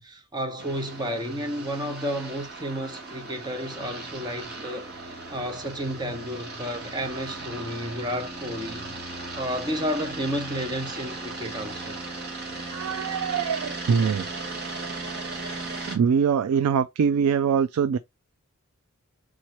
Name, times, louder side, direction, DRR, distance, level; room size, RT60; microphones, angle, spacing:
voice 1, 0.0-9.1 9.4-12.0, equal, 20° right, 0.9 m, -32 dB
sound 1, 0.6-16.0, right 3 dB, 50° right, 1.3 m, -37 dB
voice 2, 12.7-14.5 15.9-18.0, right 6 dB, 85° right, 0.3 m, -23 dB
3.7 x 3.1 x 4.3 m
head